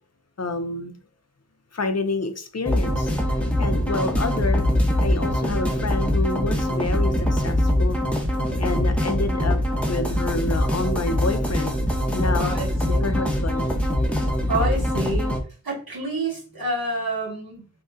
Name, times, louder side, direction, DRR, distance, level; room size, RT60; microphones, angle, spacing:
voice 1, 0.4-1.0 1.7-3.1 3.6-4.6 5.0-8.0 8.6-9.6 9.9-11.8 12.1-12.5 13.0-13.7, left 3 dB, 45° left, 6 dB, 0.6 m, -28 dB
sound 1, 2.7-15.4, equal, 5° left, 0.8 m, -23 dB
voice 2, 12.4-13.0 14.5-15.4 15.6-17.7, right 1 dB, 85° right, -4 dB, 1.6 m, -28 dB
3.8 x 2.8 x 2.5 m, 0.37 s
wide cardioid pair, 45°, 35 cm